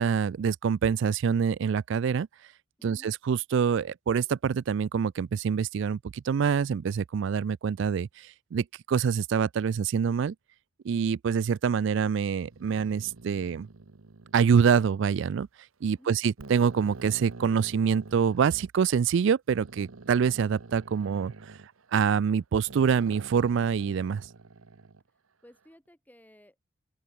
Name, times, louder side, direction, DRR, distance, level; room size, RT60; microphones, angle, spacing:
voice 1, 0.0-2.3 2.8-10.3 10.8-13.7 14.3-15.5 15.8-21.3 21.9-24.3, right 6 dB, 60° right, 0.3 m, -26 dB
voice 2, 2.8-3.1 16.0-16.2 25.4-26.6, equal, 10° left, 3.7 m, -55 dB
sound 1, 12.4-15.3 15.9-16.0 16.4-18.7 19.5-22.3 22.7-25.0, right 3 dB, 80° right, 0.9 m, -47 dB
open air
head